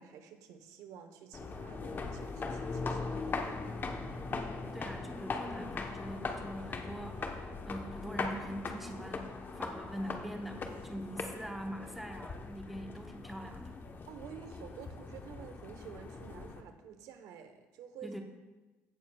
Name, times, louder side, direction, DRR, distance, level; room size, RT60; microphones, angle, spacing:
voice 1, 0.0-3.8 14.1-18.1, right 8 dB, 85° right, 7 dB, 0.9 m, -50 dB
sound 1, 1.3-16.6, left 3 dB, 35° left, 0.9 m, -40 dB
voice 2, 4.7-13.8 18.0-18.2, equal, ahead, 2 dB, 1.0 m, -43 dB
16.5 x 6.8 x 2.3 m, 1.2 s
cardioid pair, 100°, 6 cm